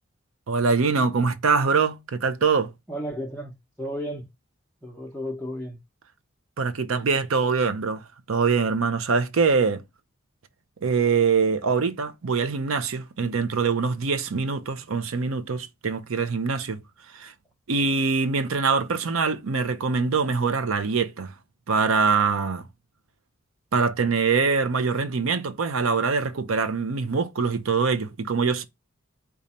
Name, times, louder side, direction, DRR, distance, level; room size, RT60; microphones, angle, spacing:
voice 1, 0.5-2.7 6.6-9.8 10.8-16.8 17.1-17.3 17.7-21.3 21.7-22.6 23.7-28.6, right 5 dB, 80° right, 0.6 m, -24 dB
voice 2, 2.9-4.3 4.8-5.8, equal, ahead, 0.6 m, -33 dB
5.1 x 2.4 x 4.1 m
head